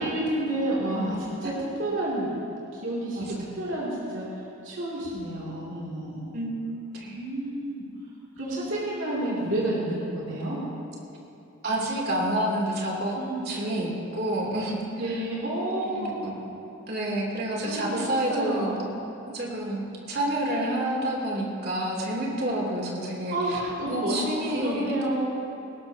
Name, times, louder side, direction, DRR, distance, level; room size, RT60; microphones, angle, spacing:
voice 1, 0.0-1.5 1.8-2.3 2.7-3.3 3.6-6.3 7.1-7.8 8.4-10.6 13.2-13.4 15.0-16.2 17.6-18.8 23.3-25.3, right 1 dB, 75° right, -7 dB, 2.7 m, -30 dB
voice 2, 3.1-3.5 6.3-6.6 6.9-7.2 11.6-13.1 13.5-15.2 15.8-16.4 16.9-18.8 19.3-23.6 23.9-24.9, right 1 dB, 50° right, -3 dB, 3.0 m, -29 dB
20.0 x 17.5 x 2.8 m, 2.9 s
head